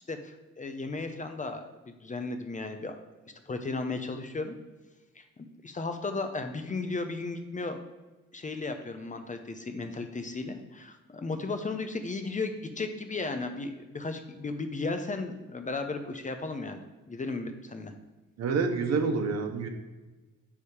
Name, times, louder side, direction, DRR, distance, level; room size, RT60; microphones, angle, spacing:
voice 1, 0.1-3.0 3.5-4.5 5.2-7.8 8.3-16.8 17.1-17.9, left 3 dB, 25° left, 7 dB, 0.8 m, -35 dB
voice 2, 18.4-19.7, right 4 dB, 60° right, 5 dB, 1.1 m, -27 dB
9.2 x 3.7 x 4.9 m, 1.2 s
cardioid pair, 90°, 30 cm